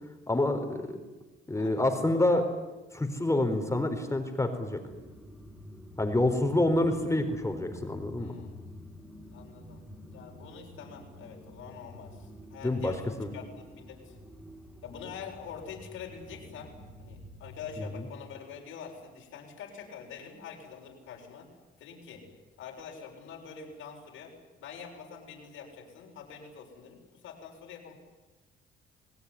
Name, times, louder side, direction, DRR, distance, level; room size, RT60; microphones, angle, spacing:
voice 1, 0.3-1.0 1.5-2.5 2.9-4.8 6.0-8.3 12.6-12.9 13.2-13.3 17.8-18.0, left 1 dB, 15° left, 6 dB, 4.2 m, -27 dB
voice 2, 1.5-1.8 8.2-8.8 9.3-9.8 10.1-14.2 14.8-21.5 21.8-22.2 22.6-24.3 24.6-27.9, left 6 dB, 85° left, 1 dB, 7.0 m, -45 dB
sound 1, 4.9-18.1, left 1 dB, 5° right, 5.5 m, -49 dB
27.5 x 18.5 x 10.0 m, 1.1 s
cardioid pair, 90°, 20 cm